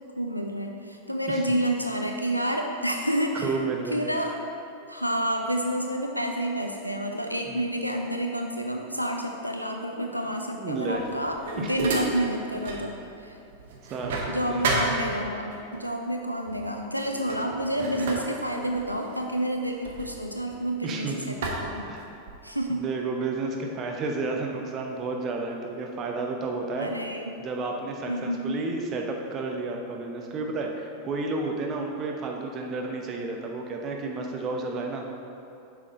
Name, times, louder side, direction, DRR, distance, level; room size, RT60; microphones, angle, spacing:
voice 1, 0.2-3.6 3.9-4.4 4.9-13.4 14.3-21.9 22.4-22.9 26.8-27.3 28.1-28.6, right 1 dB, 90° right, 2 dB, 0.4 m, -29 dB
voice 2, 3.3-4.0 7.5-7.7 10.6-11.0 11.6-11.7 13.9-14.1 14.5-14.6 20.8-21.4 21.9-22.0 22.8-26.9 27.4-35.1, right 3 dB, 30° right, 1 dB, 0.9 m, -31 dB
sound 1, 10.9-12.9 13.3-15.6 16.4-16.7 17.0-20.9 21.4-22.6, right 3 dB, 60° right, 1.0 m, -32 dB
7.4 x 6.3 x 3.9 m, 2.9 s
figure-of-eight pair, 90°, 0 cm